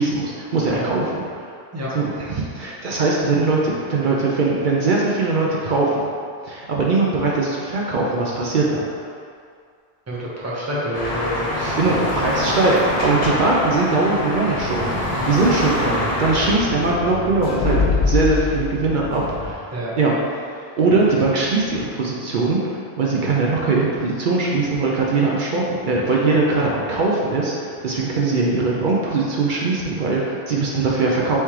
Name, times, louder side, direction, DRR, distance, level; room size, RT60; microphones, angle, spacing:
voice 1, 0.0-1.5 1.9-6.0 6.4-8.8 11.8-15.0 15.3-20.1 20.8-31.4, right 3 dB, 60° right, -3 dB, 0.6 m, -21 dB
voice 2, 10.1-11.8 13.2-13.4 14.9-15.3 15.6-15.7 19.7-19.9, equal, 20° right, -6 dB, 0.7 m, -28 dB
sound 1, 10.9-16.5, left 1 dB, 40° left, 0.8 m, -25 dB
sound 2, 14.5-19.5, left 4 dB, 80° left, 0.9 m, -26 dB
4.2 x 3.6 x 3.1 m, 2.2 s
omnidirectional pair, 1.0 m